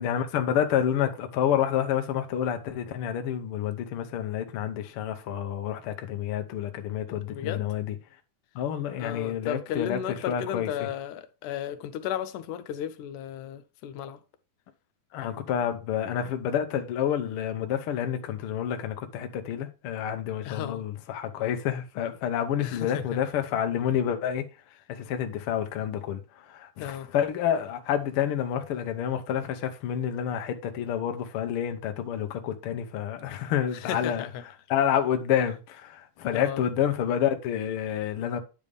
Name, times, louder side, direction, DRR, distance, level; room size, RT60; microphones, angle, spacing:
voice 1, 0.0-7.9 8.5-10.9 15.1-24.4 24.9-26.2 26.5-34.2 34.7-38.4, left 9 dB, 70° left, 1.3 m, -29 dB
voice 2, 7.1-7.7 9.0-14.2 20.4-20.8 22.6-23.2 26.8-27.1 33.7-34.4 36.3-36.6, left 10 dB, 85° left, 2.2 m, -34 dB
9.7 x 3.4 x 5.2 m
omnidirectional pair, 3.5 m